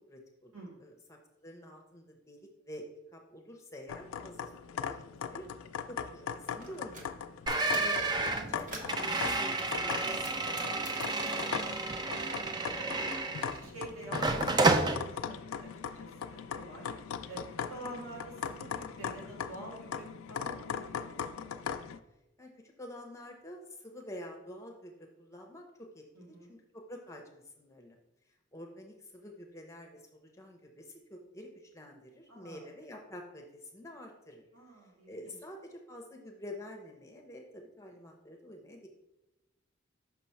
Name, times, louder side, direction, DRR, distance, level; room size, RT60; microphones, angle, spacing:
voice 1, 0.1-0.5 0.8-2.9 3.1-5.5 5.8-7.2 7.7-12.1 22.4-28.0 28.5-34.4 35.1-38.9, left 1 dB, 15° left, 1 dB, 0.8 m, -48 dB
sound 1, 3.9-22.0, left 7 dB, 90° left, 0.4 m, -40 dB
sound 2, 6.6-7.1 7.5-8.0 8.4-9.0 9.6-12.5 12.8-13.9, right 2 dB, 40° right, 0.9 m, -48 dB
sound 3, 7.5-13.7 14.1-15.0, right 3 dB, 20° right, 0.4 m, -30 dB
voice 2, 13.4-16.9 17.3-21.4 26.1-26.5 32.3-32.6 34.5-35.4, right 2 dB, 85° right, -3 dB, 2.1 m, -48 dB
5.8 x 3.0 x 5.7 m, 0.93 s
head